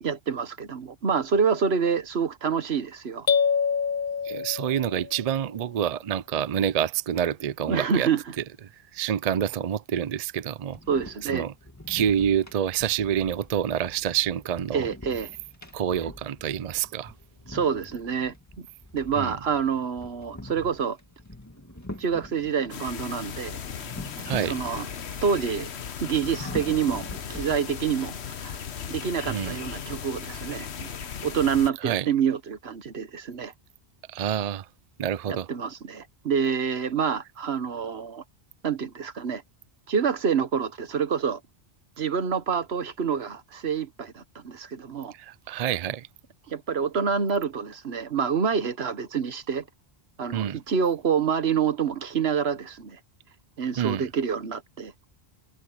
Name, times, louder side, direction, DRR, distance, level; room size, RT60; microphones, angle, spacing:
voice 1, 0.0-3.3 7.7-8.2 10.9-11.5 14.7-15.3 17.5-18.7 18.9-21.0 22.0-23.6 24.5-24.8 25.2-25.7 26.0-28.1 28.4-28.6 28.9-30.9 31.2-33.5 35.3-38.2 38.6-39.4 39.9-41.4 42.0-45.1 46.5-49.6 50.2-53.0 53.6-54.9, right 6 dB, 75° right, 1.5 m, -27 dB
sound 1, 3.3-5.2, left 6 dB, 55° left, 1.0 m, -25 dB
voice 2, 4.2-8.1 8.4-8.5 8.9-10.8 11.2-11.5 11.9-14.9 15.7-17.1 19.2-19.3 24.2-24.6 29.3-29.6 31.8-32.1 34.1-34.7 35.0-35.5 45.1-46.1 50.3-50.6 53.8-54.1, right 9 dB, 50° right, 0.5 m, -27 dB
sound 2, 10.6-22.8 23.6-25.1 25.4-25.5 26.1-28.0, left 1 dB, 15° left, 2.3 m, -44 dB
sound 3, 22.7-31.7, left 7 dB, 90° left, 1.3 m, -37 dB
omnidirectional pair, 1.1 m